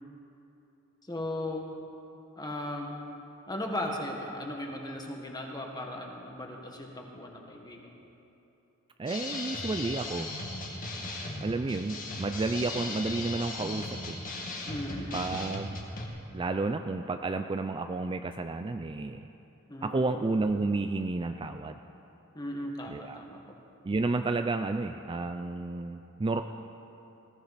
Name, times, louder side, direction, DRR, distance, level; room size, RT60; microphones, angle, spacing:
voice 1, 1.1-1.8 2.3-3.1 3.5-7.9 14.7-15.3 19.7-20.2 22.3-23.4, left 1 dB, 20° left, 1 dB, 1.6 m, -37 dB
voice 2, 9.0-10.3 11.4-14.2 15.1-15.8 16.3-19.3 19.8-21.8 22.9-23.2 23.8-26.4, right 3 dB, 20° right, 7 dB, 0.4 m, -31 dB
sound 1, 9.1-16.1, left 2 dB, 40° left, 2.0 m, -37 dB
20.0 x 15.0 x 4.1 m, 3.0 s
head